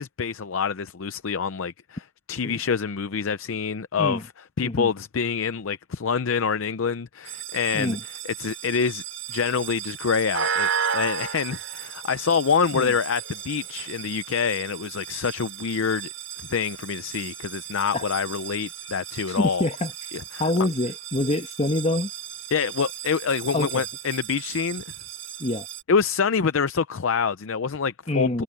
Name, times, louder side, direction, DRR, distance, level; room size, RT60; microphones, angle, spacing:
voice 1, 0.0-2.0 2.3-4.2 4.6-8.0 8.2-16.1 16.5-19.6 20.1-20.4 22.5-24.8 25.9-28.4, left 6 dB, 75° left, 0.6 m, -26 dB
sound 1, 7.2-25.8, right 8 dB, 80° right, 4.3 m, -34 dB
voice 2, 19.3-19.9 20.4-22.1 23.5-23.8 25.4-25.7 28.1-28.4, left 1 dB, 30° left, 1.3 m, -26 dB
head